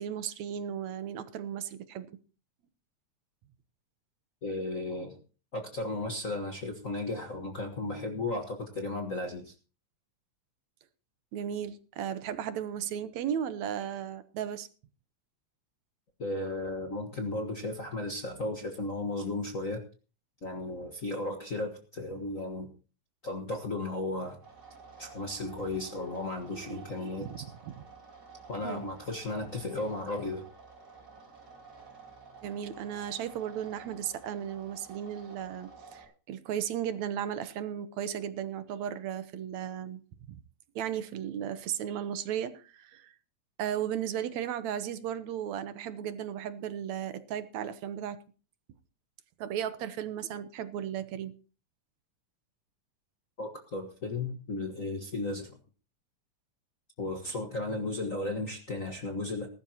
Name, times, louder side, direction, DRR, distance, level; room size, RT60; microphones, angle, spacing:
voice 1, 0.0-2.1 11.3-14.7 26.5-27.4 27.7-27.8 28.6-28.8 32.4-40.0 40.3-40.4 40.8-43.1 43.6-48.2 49.4-51.3, right 9 dB, 75° right, 2.2 m, -35 dB
voice 2, 4.4-5.2 5.5-9.5 16.2-19.8 20.4-22.7 23.2-24.4 25.0-27.4 28.5-30.4 53.4-55.6 57.0-59.5, left 2 dB, 40° left, 1.2 m, -35 dB
sound 1, 24.4-36.1, right 4 dB, 35° right, 6.4 m, -52 dB
20.0 x 12.0 x 2.8 m
omnidirectional pair, 3.3 m